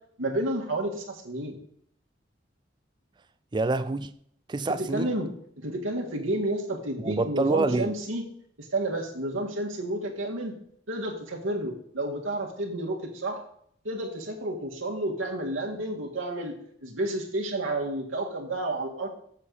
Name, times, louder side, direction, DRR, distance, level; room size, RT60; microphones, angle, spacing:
voice 1, 0.2-1.6 4.9-5.3 5.6-8.3 8.7-10.5 10.9-13.4 13.8-16.5 16.8-19.1, right 1 dB, 90° right, 1.7 m, -30 dB
voice 2, 3.5-4.1 4.5-5.1 7.0-7.9, right 3 dB, 25° right, 0.4 m, -26 dB
7.4 x 6.3 x 5.4 m
head